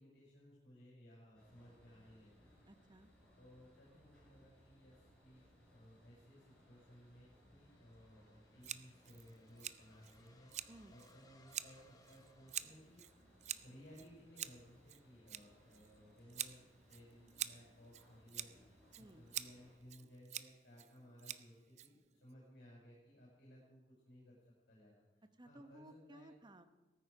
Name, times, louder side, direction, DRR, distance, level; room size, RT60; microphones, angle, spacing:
voice 1, 0.0-2.5 3.4-5.4 5.7-13.0 13.6-26.3, equal, 70° left, -5 dB, 5.7 m, -61 dB
sound 1, 1.3-19.8, equal, 5° left, 6.9 m, -68 dB
voice 2, 2.7-3.1 10.7-10.9 19.0-19.2 25.4-26.7, right 1 dB, 25° right, 9 dB, 0.9 m, -58 dB
sound 2, 6.6-13.6, left 2 dB, 20° left, 1.0 m, -70 dB
Scissors, 8.6-22.3, right 11 dB, 40° right, 0.5 m, -48 dB
17.0 x 14.0 x 4.8 m, 1.1 s
head